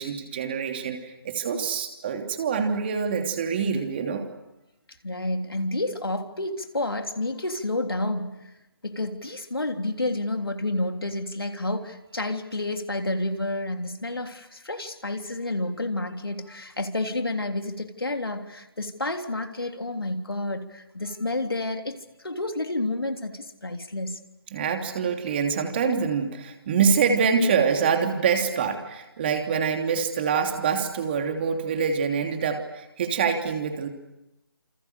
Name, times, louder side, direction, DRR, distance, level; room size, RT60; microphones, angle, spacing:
voice 1, 0.0-4.3 24.5-33.9, right 6 dB, 25° right, 4 dB, 3.0 m, -25 dB
voice 2, 5.0-8.5 8.8-21.9 22.2-24.2, left 2 dB, 75° left, 5 dB, 3.4 m, -30 dB
29.0 x 28.5 x 6.7 m, 0.94 s
figure-of-eight pair, 150°, 12 cm